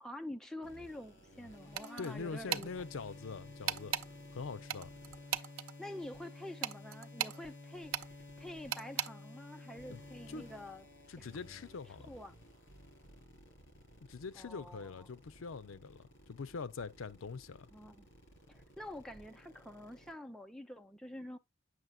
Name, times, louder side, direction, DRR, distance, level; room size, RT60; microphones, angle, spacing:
voice 1, 0.0-2.7 5.6-10.8 11.2-11.3 12.0-12.4 14.4-15.1 17.7-18.1 18.5-21.4, left 1 dB, 5° left, 0.5 m, -47 dB
sound 1, 0.6-20.1, left 2 dB, 60° left, 4.0 m, -54 dB
sound 2, 1.8-2.1 2.5-2.7 3.7-4.1 4.7-5.7 6.6-7.4 7.9-8.1 8.7-9.1, right 9 dB, 80° right, 0.6 m, -36 dB
voice 2, 2.0-3.9 4.3-4.9 9.9-10.0 10.3-10.5 11.1-12.1 14.0-17.7, left 4 dB, 75° left, 0.5 m, -43 dB
9.3 x 6.5 x 2.3 m
head